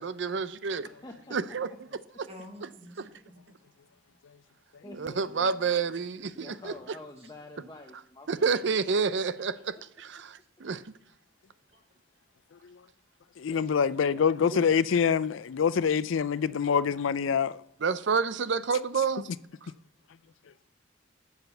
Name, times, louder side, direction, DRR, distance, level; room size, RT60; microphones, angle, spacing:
voice 1, 0.0-0.8 1.3-1.7 2.6-2.7 3.0-3.1 5.0-6.7 8.3-10.8 14.5-14.6 17.8-19.3, right 5 dB, 70° right, 0.5 m, -29 dB
voice 2, 1.0-2.0 3.9-4.0 4.8-5.5 6.3-8.6 13.5-14.9 15.4-15.5, left 2 dB, 20° left, 0.7 m, -48 dB
voice 3, 2.3-3.5 4.8-5.6 6.2-6.6 11.7-11.8, left 1 dB, 30° right, 1.7 m, -50 dB
voice 4, 13.4-17.6, left 6 dB, 85° left, 0.4 m, -25 dB
7.6 x 7.2 x 7.0 m
head